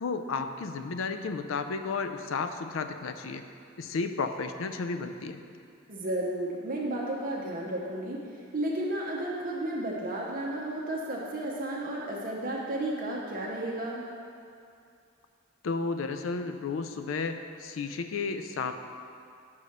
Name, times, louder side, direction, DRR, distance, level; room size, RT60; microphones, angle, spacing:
voice 1, 0.0-3.4 3.8-5.4 15.6-18.7, left 4 dB, 80° left, 8 dB, 0.4 m, -33 dB
voice 2, 5.9-8.2 8.5-14.0, right 1 dB, 45° right, -3 dB, 0.8 m, -33 dB
5.6 x 4.9 x 6.4 m, 2.5 s
head